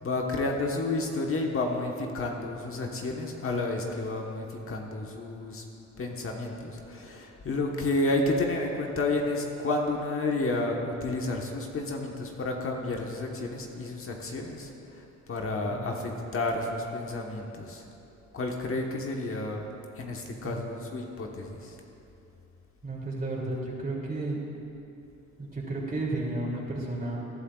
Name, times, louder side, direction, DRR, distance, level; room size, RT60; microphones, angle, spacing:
voice 1, 0.0-5.6 6.0-17.8 18.3-19.6 20.0-21.8, left 2 dB, 45° left, 1 dB, 1.3 m, -31 dB
voice 2, 22.8-24.4 25.4-27.2, right 2 dB, 30° right, -3 dB, 2.8 m, -32 dB
19.5 x 11.5 x 2.4 m, 2.8 s
cardioid pair, 90°, 30 cm